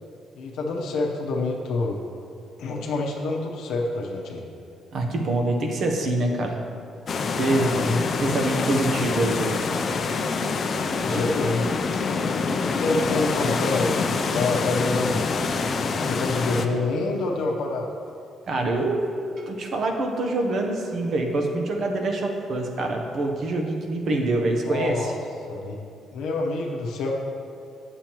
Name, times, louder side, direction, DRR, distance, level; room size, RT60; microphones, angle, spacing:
voice 1, 0.3-2.0 2.6-4.5 7.6-8.0 11.0-11.7 12.7-14.0 14.3-15.2 16.0-17.9 24.6-25.2 25.5-25.8 26.1-27.1, left 3 dB, 80° left, -1 dB, 0.8 m, -27 dB
voice 2, 4.9-6.6 7.4-7.7 8.2-9.5 11.0-11.2 18.5-19.0 19.4-25.1, right 2 dB, 50° right, 3 dB, 0.8 m, -25 dB
sound 1, 7.1-16.7, left 4 dB, 40° left, 0.4 m, -26 dB
8.8 x 6.9 x 3.0 m, 2.6 s
cardioid pair, 140°, 0 cm